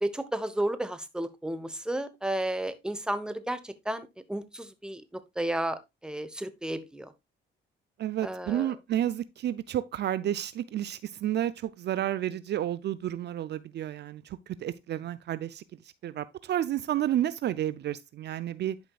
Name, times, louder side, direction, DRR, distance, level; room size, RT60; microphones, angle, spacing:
voice 1, 0.0-5.0 5.4-7.1 8.2-8.7, right 1 dB, 5° right, 0.9 m, -32 dB
voice 2, 8.0-14.2 14.6-15.6 16.0-18.8, right 11 dB, 60° right, 0.4 m, -31 dB
11.0 x 5.1 x 2.3 m
cardioid pair, 90°, 20 cm